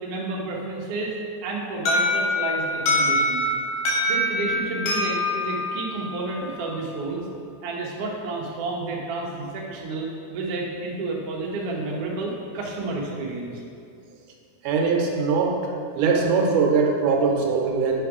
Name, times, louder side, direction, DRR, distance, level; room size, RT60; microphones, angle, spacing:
voice 1, 0.0-1.1 1.4-3.4 4.0-7.2 7.6-13.5, right 3 dB, 70° right, -2 dB, 1.5 m, -30 dB
Alarm, 1.9-6.6, left 1 dB, 80° left, 3.0 m, -24 dB
voice 2, 14.6-15.6 16.0-18.0, right 5 dB, 85° right, 0 dB, 2.3 m, -21 dB
7.3 x 3.4 x 4.8 m, 2.3 s
omnidirectional pair, 3.6 m